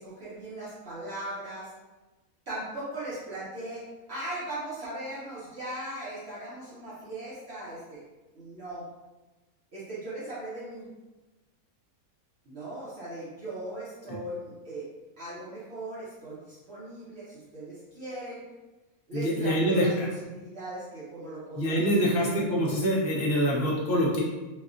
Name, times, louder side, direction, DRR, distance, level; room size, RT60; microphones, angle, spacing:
voice 1, 0.0-1.7 2.5-8.0 8.3-8.9 9.7-10.9 12.4-14.9 15.2-18.4 19.1-22.3, right 1 dB, 50° right, -10 dB, 1.1 m, -38 dB
voice 2, 19.1-20.1 21.6-24.2, equal, 45° left, -4 dB, 0.9 m, -25 dB
4.1 x 2.3 x 2.5 m, 1.1 s
omnidirectional pair, 1.5 m